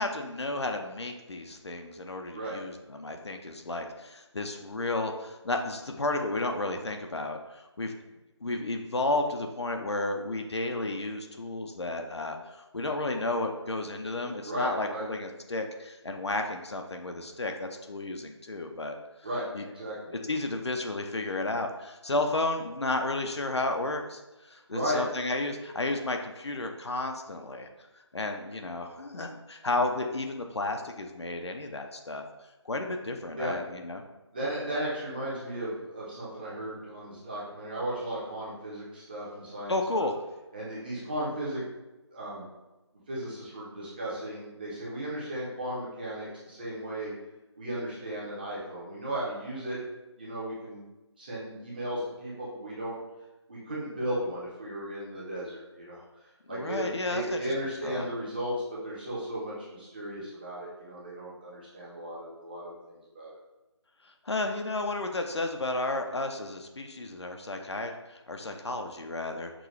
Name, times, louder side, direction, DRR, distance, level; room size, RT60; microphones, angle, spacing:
voice 1, 0.0-7.9 8.4-19.0 19.5-19.7 20.1-27.7 28.1-32.2 32.6-34.1 39.7-40.1 56.5-57.5 57.8-58.1 64.2-69.5, left 2 dB, 65° left, 4 dB, 0.6 m, -32 dB
voice 2, 14.5-15.0 19.2-19.4 19.7-20.1 24.7-25.0 33.3-33.5 34.3-40.1 40.5-41.6 42.1-42.4 43.1-47.1 47.6-49.8 50.2-50.8 51.2-53.0 53.5-56.0 56.5-58.5 58.8-63.4, right 1 dB, 20° right, -7 dB, 0.9 m, -35 dB
6.0 x 2.3 x 3.1 m, 1.1 s
figure-of-eight pair, 160°, 15 cm